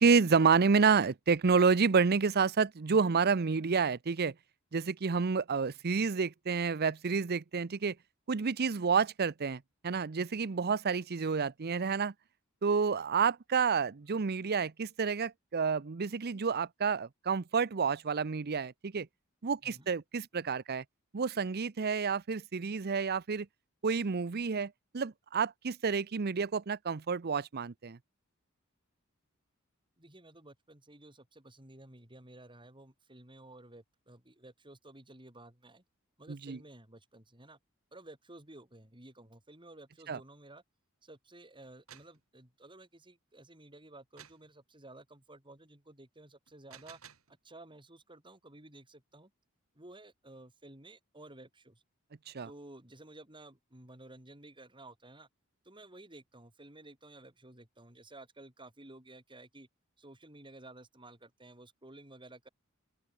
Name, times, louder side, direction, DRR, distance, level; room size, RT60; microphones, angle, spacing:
voice 1, 0.0-4.3 4.7-7.9 8.3-12.1 12.6-19.1 19.4-20.8 21.1-23.5 23.8-28.0 36.3-36.6 40.1-40.2 52.3-52.5, right 5 dB, 50° right, 0.6 m, -29 dB
voice 2, 30.0-35.8 36.2-37.6 37.9-40.6 41.0-47.0 47.3-49.3 49.8-51.8 52.4-55.3 55.6-59.7 60.0-62.5, right 2 dB, 25° right, 5.4 m, -54 dB
Mechanism Stuck, 41.6-42.2 44.2-44.5 46.5-47.3, right 8 dB, 90° right, 3.7 m, -54 dB
open air
head